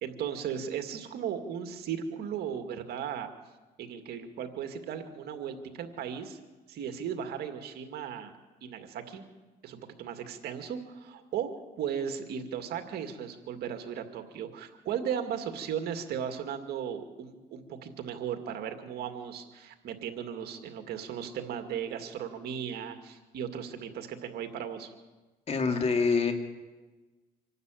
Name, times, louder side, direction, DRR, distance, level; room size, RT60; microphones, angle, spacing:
voice 1, 0.0-3.3 3.8-6.4 6.7-8.3 8.6-9.2 9.6-11.5 11.8-24.9, right 8 dB, 70° right, 6 dB, 2.2 m, -36 dB
voice 2, 25.5-26.3, left 4 dB, 40° left, 4 dB, 2.8 m, -25 dB
26.0 x 12.0 x 9.2 m, 1.2 s
cardioid pair, 110°, 17 cm